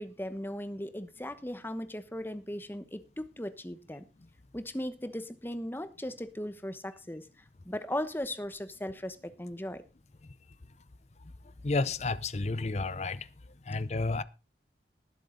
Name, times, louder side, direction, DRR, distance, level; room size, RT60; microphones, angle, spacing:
voice 1, 0.0-4.0 4.5-7.3 7.6-9.8, left 1 dB, 10° left, 1.0 m, -37 dB
voice 2, 11.6-13.3 13.7-14.2, left 3 dB, 40° left, 0.6 m, -31 dB
19.5 x 7.6 x 3.9 m
head